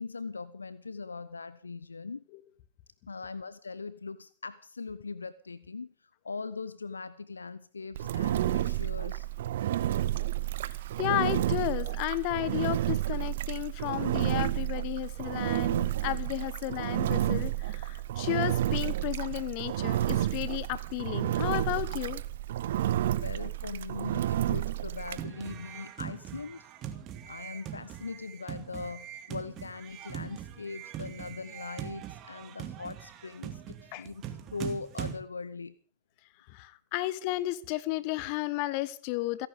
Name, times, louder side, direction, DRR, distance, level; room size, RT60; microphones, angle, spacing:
voice 1, 0.0-2.2 3.1-5.9 6.2-9.3 23.1-26.7 27.3-34.2 34.5-35.8, left 4 dB, 75° left, 17 dB, 0.6 m, -40 dB
Engine, 7.9-25.2, right 13 dB, 60° right, 0.8 m, -30 dB
voice 2, 11.0-22.2 33.9-34.1 36.5-39.5, left 17 dB, 45° left, 19 dB, 1.1 m, -33 dB
sound 1, 25.0-35.2, right 11 dB, 35° right, 2.2 m, -42 dB
29.5 x 11.0 x 3.7 m, 0.43 s
figure-of-eight pair, 90°, 0 cm